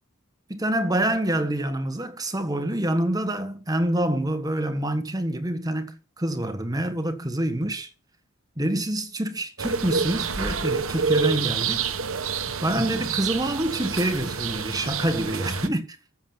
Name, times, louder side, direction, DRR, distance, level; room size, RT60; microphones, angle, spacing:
voice 1, 0.5-7.9 8.6-12.2 12.6-16.0, right 1 dB, 15° right, 1.4 m, -26 dB
sound 1, 9.6-15.7, right 5 dB, 65° right, 1.4 m, -28 dB
14.0 x 7.4 x 5.9 m
head